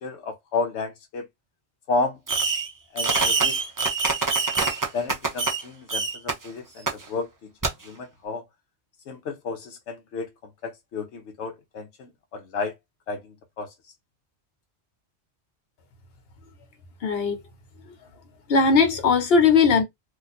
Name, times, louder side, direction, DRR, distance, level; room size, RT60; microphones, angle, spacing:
voice 1, 0.0-1.3 1.9-2.2 2.9-3.6 4.9-7.3 7.9-8.4 9.1-10.3 10.6-12.7 13.1-13.2 13.6-13.7, left 4 dB, 85° left, 0.9 m, -31 dB
Fireworks, 2.3-2.7 3.0-5.6 5.9-6.3 6.9-7.0 7.6-7.7, right 4 dB, 25° right, 0.4 m, -24 dB
voice 2, 17.0-17.4 18.5-19.8, left 5 dB, 65° left, 1.1 m, -18 dB
2.5 x 2.3 x 4.0 m
omnidirectional pair, 1.1 m